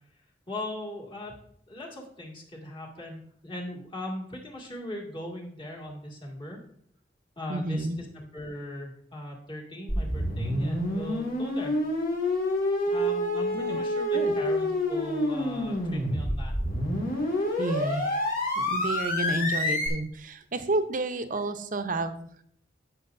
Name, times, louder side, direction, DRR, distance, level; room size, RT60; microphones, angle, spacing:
voice 1, 0.5-1.3 1.7-6.6 7.4-11.8 12.9-16.5, left 1 dB, 30° left, -2 dB, 2.1 m, -39 dB
voice 2, 7.5-8.0 13.5-13.8 14.1-14.3 17.6-18.3 18.6-22.3, right 2 dB, 50° right, 9 dB, 0.7 m, -30 dB
sound 1, 9.9-19.9, left 1 dB, 50° left, 2.2 m, -28 dB
14.5 x 6.3 x 2.6 m, 0.67 s
head